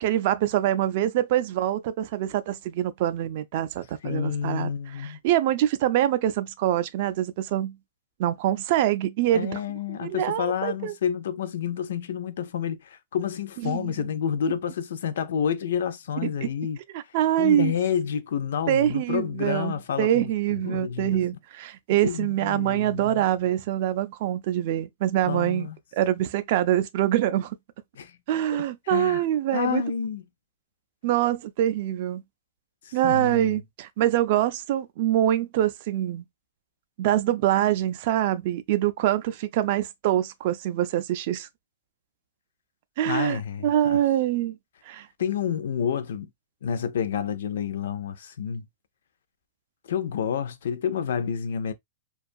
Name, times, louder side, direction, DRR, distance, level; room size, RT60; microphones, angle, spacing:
voice 1, 0.0-4.7 5.0-7.8 8.2-9.6 10.0-10.9 13.6-14.1 16.2-16.5 16.9-17.7 18.7-25.7 25.9-27.6 28.3-29.8 31.0-32.2 32.9-36.2 37.0-41.5 43.0-44.6 44.9-45.1, right 12 dB, 45° right, 0.3 m, -25 dB
voice 2, 4.0-5.2 9.3-16.8 17.4-21.2 22.0-23.2 25.2-25.8 28.0-28.2 28.5-29.2 29.5-30.2 32.9-33.6 43.0-44.0 45.2-46.3 46.6-48.6 49.9-51.7, left 8 dB, 75° left, 0.4 m, -29 dB
2.4 x 2.3 x 2.5 m
supercardioid pair, 160°, 0 cm